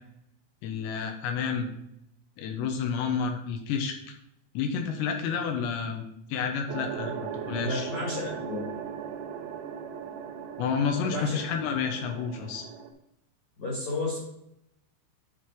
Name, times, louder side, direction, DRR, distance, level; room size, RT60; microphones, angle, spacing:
voice 1, 0.6-1.7 2.4-4.0 4.5-7.9 10.6-12.7, left 6 dB, 80° left, 4 dB, 2.8 m, -30 dB
sound 1, 6.7-12.9, right 7 dB, 80° right, 3.0 m, -38 dB
voice 2, 7.6-8.7 10.9-11.4 13.6-14.2, left 2 dB, 50° left, -5 dB, 2.5 m, -32 dB
10.0 x 3.9 x 4.6 m, 0.79 s
omnidirectional pair, 5.7 m